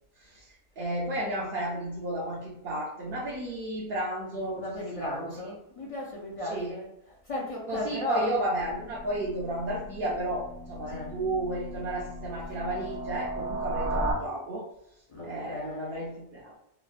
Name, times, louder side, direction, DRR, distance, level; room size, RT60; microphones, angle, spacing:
voice 1, 0.2-4.6 4.9-5.3 6.5-6.7 7.7-14.6 15.2-16.6, right 1 dB, 65° right, -5 dB, 0.8 m, -33 dB
voice 2, 4.5-8.4 10.8-11.2 15.1-16.3, left 1 dB, 50° left, -3 dB, 0.4 m, -36 dB
sound 1, 8.6-14.1, right 1 dB, 35° right, 0.7 m, -36 dB
3.0 x 2.0 x 2.4 m, 0.78 s
omnidirectional pair, 1.1 m